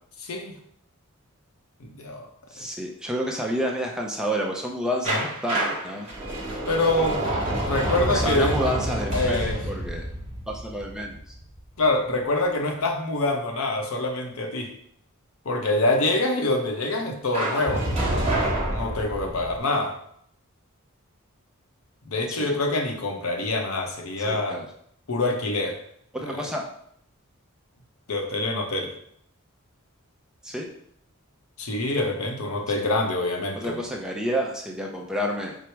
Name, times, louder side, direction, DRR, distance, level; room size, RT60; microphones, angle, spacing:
voice 1, 0.2-0.5 1.8-2.3 2.6-2.7 5.1-5.3 6.7-7.2 7.5-8.5 9.1-9.6 11.8-14.7 15.4-18.1 18.7-19.9 22.0-24.6 25.1-25.8 26.2-26.5 28.1-28.9 31.6-33.8, left 2 dB, 70° left, 2 dB, 0.7 m, -25 dB
voice 2, 2.5-5.2 5.4-6.1 8.1-10.0 10.5-11.2 22.3-22.5 24.3-24.7 26.1-26.7 30.4-30.7 32.7-32.9 33.6-35.6, equal, 5° right, 0 dB, 0.4 m, -29 dB
sound 1, 5.0-11.8 17.3-19.6, right 1 dB, 25° right, 1.1 m, -28 dB
4.6 x 2.0 x 4.4 m, 0.68 s
head